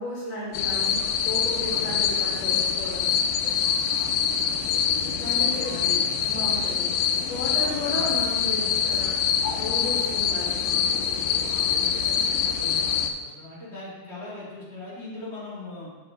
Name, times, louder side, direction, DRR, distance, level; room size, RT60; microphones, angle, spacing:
voice 1, 0.0-3.1 5.2-6.9 7.2-9.2 9.5-10.7, left 2 dB, 60° left, -6 dB, 2.7 m, -34 dB
sound 1, 0.5-13.1, left 7 dB, 90° left, 2.1 m, -25 dB
voice 2, 5.6-5.9 7.8-8.1 11.5-11.9 12.5-15.9, left 2 dB, 20° left, -8 dB, 2.8 m, -40 dB
7.7 x 5.8 x 4.9 m, 1.3 s
omnidirectional pair, 3.5 m